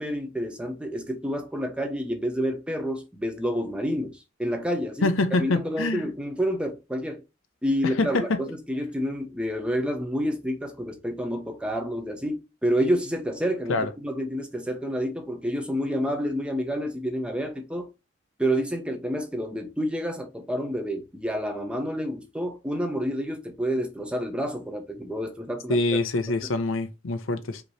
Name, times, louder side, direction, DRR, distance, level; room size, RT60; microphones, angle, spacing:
voice 1, 0.0-5.1 5.4-7.2 7.6-17.9 18.4-25.8 26.4-26.5, equal, 5° right, 0.9 m, -29 dB
voice 2, 5.0-6.1 8.0-8.2 13.7-13.9 25.7-27.6, left 2 dB, 85° left, 0.7 m, -25 dB
5.2 x 3.0 x 3.1 m
head